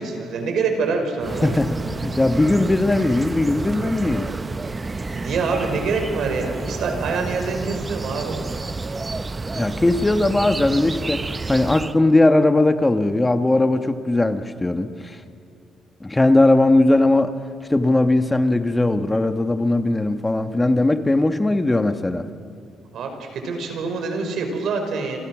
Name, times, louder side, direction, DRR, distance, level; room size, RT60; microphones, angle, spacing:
voice 1, 0.0-1.5 5.1-8.4 22.9-25.2, right 4 dB, 70° right, 5 dB, 5.3 m, -25 dB
sound 1, 1.2-12.0, right 3 dB, 25° right, 0.8 m, -30 dB
voice 2, 1.3-4.3 9.5-15.2 16.0-17.3 17.7-22.3, left 2 dB, 15° left, 8 dB, 1.3 m, -19 dB
28.0 x 28.0 x 6.2 m, 2.7 s
cardioid pair, 90°, 0 cm